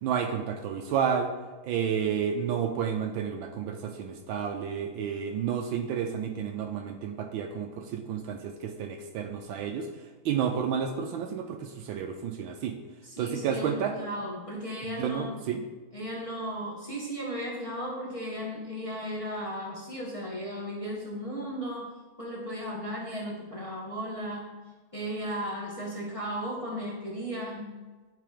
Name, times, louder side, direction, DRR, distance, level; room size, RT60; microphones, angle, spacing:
voice 1, 0.0-1.3 1.6-12.8 13.2-13.9 15.0-15.6, right 7 dB, 75° right, 5 dB, 1.3 m, -31 dB
voice 2, 13.0-15.3 15.9-21.9 22.2-24.5 24.9-27.8, equal, 20° left, -4 dB, 1.1 m, -35 dB
10.5 x 3.8 x 5.0 m, 1.3 s
omnidirectional pair, 2.4 m